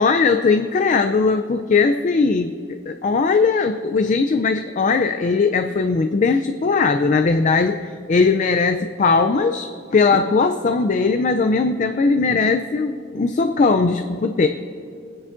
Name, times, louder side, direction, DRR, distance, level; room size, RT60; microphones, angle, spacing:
voice 1, 0.0-14.5, left 4 dB, 40° left, 7 dB, 0.4 m, -19 dB
28.5 x 10.0 x 2.5 m, 2.4 s
head